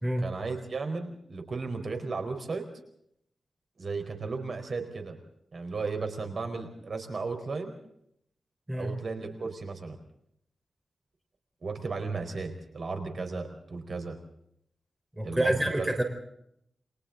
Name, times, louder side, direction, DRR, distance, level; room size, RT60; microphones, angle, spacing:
voice 1, 0.2-2.7 3.8-5.2 5.5-7.7 8.7-10.0 11.6-14.2 15.2-15.9, right 4 dB, 50° right, 5 dB, 4.5 m, -35 dB
voice 2, 15.2-16.0, right 1 dB, 15° right, 4 dB, 4.2 m, -27 dB
30.0 x 23.5 x 4.0 m, 0.73 s
wide cardioid pair, 120°, 0 cm